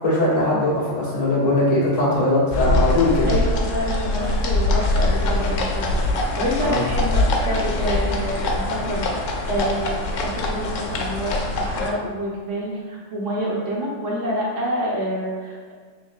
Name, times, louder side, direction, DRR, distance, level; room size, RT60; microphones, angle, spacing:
voice 1, 0.0-3.3 6.6-6.8, left 2 dB, 35° left, -8 dB, 1.3 m, -20 dB
sound 1, 2.5-11.9, left 2 dB, 85° left, 1.0 m, -23 dB
voice 2, 3.3-15.7, equal, 75° right, -5 dB, 1.3 m, -27 dB
4.0 x 3.6 x 2.4 m, 1.5 s
omnidirectional pair, 1.3 m